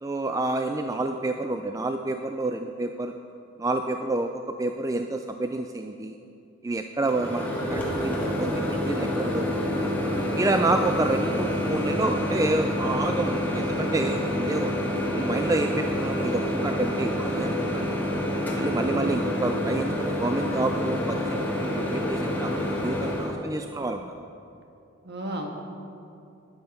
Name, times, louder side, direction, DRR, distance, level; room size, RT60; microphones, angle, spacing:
voice 1, 0.0-3.1 3.6-6.1 6.6-9.5 9.8-9.9 10.4-14.7 15.1-17.9 18.6-24.1, right 2 dB, 15° right, 6 dB, 0.3 m, -29 dB
Microwave oven, 7.0-23.3, left 1 dB, 10° left, 1.6 m, -27 dB
voice 2, 18.9-19.2 25.0-25.5, right 1 dB, 55° right, 1 dB, 1.5 m, -34 dB
12.0 x 9.7 x 5.3 m, 2.6 s
head